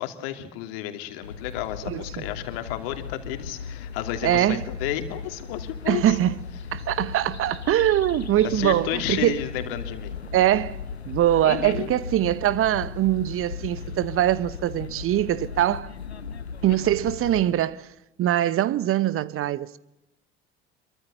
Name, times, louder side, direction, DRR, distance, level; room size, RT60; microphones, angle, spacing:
voice 1, 0.0-6.2 8.4-10.2 11.4-11.9 16.8-16.9, left 12 dB, 65° left, 2.9 m, -32 dB
sound 1, 1.2-17.5, left 6 dB, 85° left, 1.2 m, -37 dB
voice 2, 1.8-2.3 4.2-4.6 5.9-6.3 6.7-9.4 10.3-10.8 11.1-15.9 16.6-17.9 18.2-19.8, right 12 dB, 45° right, 1.0 m, -23 dB
27.0 x 23.5 x 6.8 m
figure-of-eight pair, 60°, 31 cm